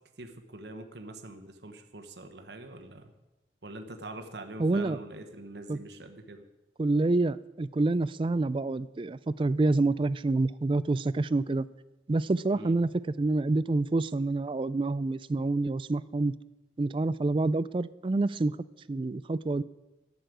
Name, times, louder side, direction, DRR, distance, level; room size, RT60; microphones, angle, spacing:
voice 1, 0.2-3.1 3.6-6.5 12.5-12.7, right 2 dB, 60° right, 6 dB, 1.2 m, -44 dB
voice 2, 4.6-5.0 5.7-5.8 6.8-11.7 12.1-12.9 13.2-16.3 16.8-18.6 18.9-19.6, right 2 dB, 25° right, 17 dB, 0.3 m, -27 dB
11.5 x 6.8 x 9.2 m, 1.0 s
head